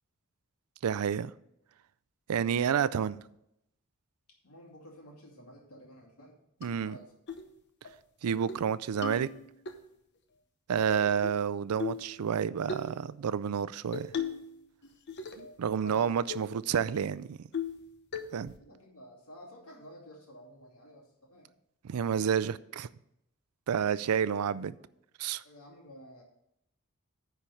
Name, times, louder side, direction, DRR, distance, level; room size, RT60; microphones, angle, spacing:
voice 1, 0.8-1.3 2.3-3.2 6.6-7.0 8.2-9.3 10.7-14.1 15.4-17.4 18.3-18.5 21.8-22.9 23.7-24.7 25.2-25.4, right 7 dB, 85° right, 0.4 m, -29 dB
voice 2, 4.4-7.1 15.8-16.1 18.6-21.5 25.4-26.2, equal, 90° left, 2.5 m, -52 dB
sound 1, 6.6-6.7 7.3-7.5 7.8-7.9 8.3-8.6 9.0-9.8 10.8-11.4 11.8-12.1 12.7-12.9 13.9-14.5 14.8-15.5 15.9-16.0 16.3-16.5 16.9-17.0 17.5-17.8 18.1-18.6, left 5 dB, 50° left, 0.9 m, -37 dB
9.8 x 4.5 x 7.0 m
head